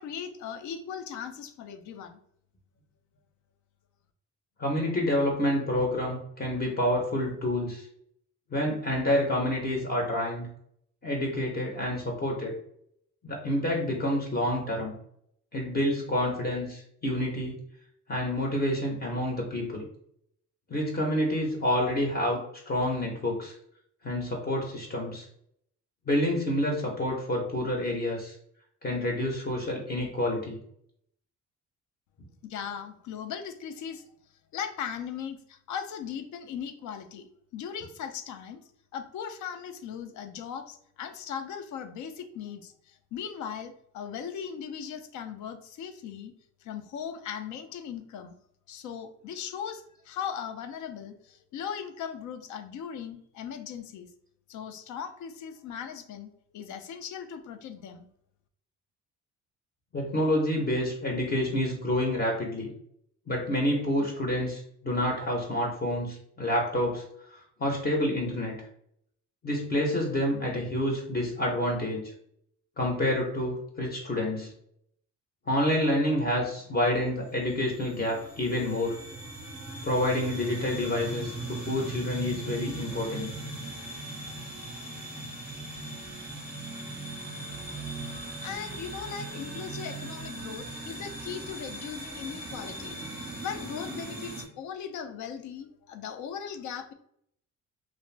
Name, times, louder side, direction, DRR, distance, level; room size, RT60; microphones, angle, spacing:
voice 1, 0.0-2.2 32.4-34.0 34.5-37.3 37.5-38.6 38.9-46.3 46.6-48.3 48.7-54.1 54.5-58.1 88.4-96.9, left 8 dB, 65° left, 8 dB, 0.5 m, -38 dB
voice 2, 4.6-7.9 8.5-10.5 11.0-12.5 13.2-14.9 15.5-17.6 18.1-19.9 20.7-23.5 24.0-25.2 26.1-28.3 28.8-30.6 59.9-62.7 63.3-67.0 67.3-68.6 69.4-72.1 72.8-74.5 75.5-79.0 79.8-83.3, left 1 dB, 30° left, 0 dB, 0.6 m, -28 dB
sound 1, 76.6-94.5, right 2 dB, 5° right, 0.7 m, -39 dB
2.5 x 2.0 x 3.2 m, 0.70 s
cardioid pair, 115°, 32 cm